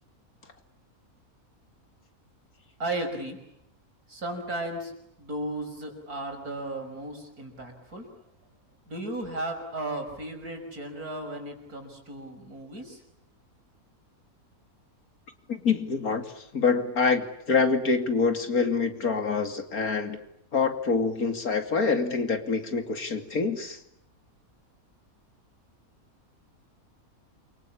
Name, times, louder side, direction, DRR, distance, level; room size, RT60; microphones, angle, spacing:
voice 1, 2.8-3.4 4.1-4.9 5.2-8.1 8.9-13.0, right 1 dB, 80° right, 4 dB, 6.3 m, -35 dB
voice 2, 15.5-16.2 16.5-20.2 20.5-23.8, left 4 dB, 75° left, 7 dB, 3.1 m, -26 dB
28.5 x 24.5 x 8.6 m, 0.79 s
omnidirectional pair, 1.6 m